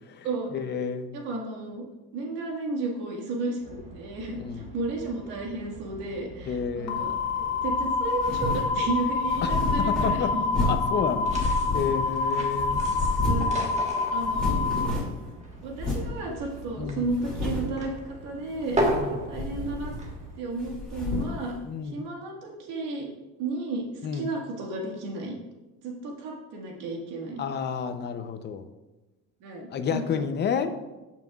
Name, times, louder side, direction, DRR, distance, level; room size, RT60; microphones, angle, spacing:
voice 1, 0.5-1.1 4.4-4.7 6.5-7.1 9.4-10.4 10.6-12.8 16.8-17.1 19.0-19.3 21.6-22.0 24.0-24.3 27.4-28.7 29.7-30.8, left 6 dB, 35° left, 9 dB, 0.7 m, -30 dB
voice 2, 1.1-1.9 2.1-7.1 7.6-10.4 13.2-13.7 14.1-14.7 15.6-18.8 19.3-19.9 20.4-21.5 21.8-23.1 23.4-23.8 24.1-25.3 25.8-27.4 29.4-30.2, right 3 dB, 75° right, -1 dB, 1.9 m, -33 dB
sound 1, 3.6-20.4, right 1 dB, 20° right, 1.5 m, -37 dB
sound 2, 6.9-14.9, left 4 dB, 60° left, 1.1 m, -27 dB
sound 3, 8.2-8.7 9.3-10.9 11.3-12.2 12.5-13.6 13.8-13.9 14.2-15.2 15.8-16.1 16.6-16.7 17.1-17.8 18.5-19.1 19.3-20.2 20.6-21.4, left 2 dB, ahead, 2.6 m, -30 dB
14.5 x 5.9 x 2.4 m, 1.1 s
cardioid pair, 140°, 31 cm